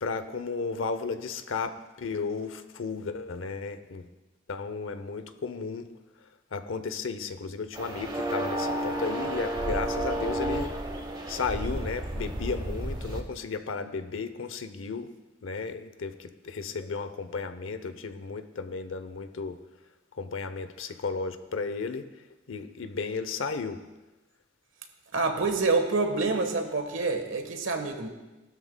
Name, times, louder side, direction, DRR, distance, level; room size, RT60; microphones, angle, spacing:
voice 1, 0.0-4.1 4.5-5.9 6.5-10.7 11.3-15.1 15.4-19.6 20.2-22.1 22.5-23.8, left 4 dB, 80° left, 10 dB, 0.7 m, -34 dB
sound 1, 7.7-13.2, right 1 dB, 20° right, 1.0 m, -31 dB
voice 2, 25.1-28.1, right 3 dB, 80° right, 5 dB, 1.3 m, -27 dB
18.0 x 12.5 x 2.2 m, 1.1 s
head